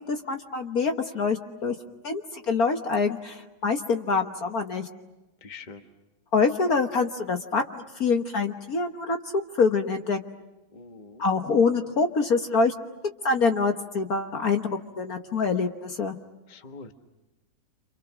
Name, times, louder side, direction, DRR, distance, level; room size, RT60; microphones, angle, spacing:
voice 1, 0.0-1.7 2.0-4.9 6.3-10.2 11.2-12.7 13.2-14.7 15.0-16.2, left 4 dB, 50° left, 5 dB, 1.7 m, -25 dB
voice 2, 5.4-5.9 10.7-11.2 16.5-16.9, left 4 dB, 25° left, 6 dB, 1.5 m, -44 dB
29.5 x 27.5 x 6.3 m, 1.0 s
omnidirectional pair, 2.1 m